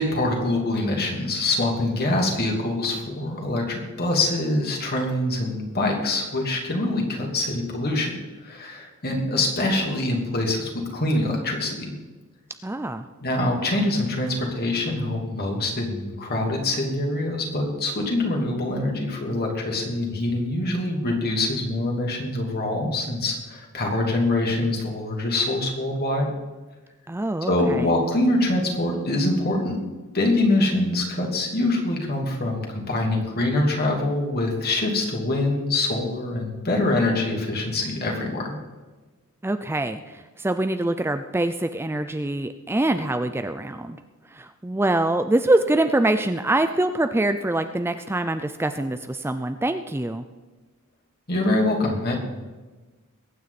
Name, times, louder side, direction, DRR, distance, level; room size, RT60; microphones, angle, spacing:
voice 1, 0.0-8.1 8.4-11.9 13.2-26.3 27.5-29.8 30.1-38.5 51.3-52.1, left 2 dB, 45° left, 0 dB, 3.0 m, -24 dB
voice 2, 12.6-13.0 27.1-27.9 39.4-44.0 44.3-50.2, right 1 dB, 10° right, 9 dB, 0.4 m, -24 dB
22.0 x 9.3 x 4.2 m, 1.3 s
head